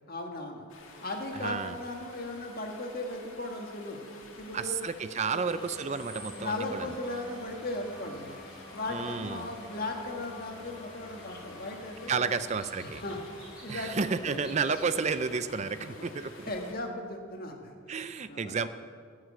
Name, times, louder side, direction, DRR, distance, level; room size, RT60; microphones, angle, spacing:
voice 1, 0.1-0.7 1.0-4.0 4.4-4.8 5.3-5.4 6.4-8.3 8.7-12.4 12.8-14.4 15.3-15.4 15.8-15.9 16.1-18.5, left 2 dB, 45° left, 2 dB, 1.7 m, -37 dB
Stream, 0.7-16.7, left 3 dB, 75° left, 2.1 m, -51 dB
voice 2, 1.4-1.8 4.5-6.9 8.9-9.5 12.1-13.0 13.7-16.3 17.9-18.7, right 5 dB, 35° right, 12 dB, 0.4 m, -31 dB
sound 1, 5.5-15.3, left 1 dB, 5° right, 3.7 m, -48 dB
16.0 x 6.5 x 8.3 m, 2.1 s
head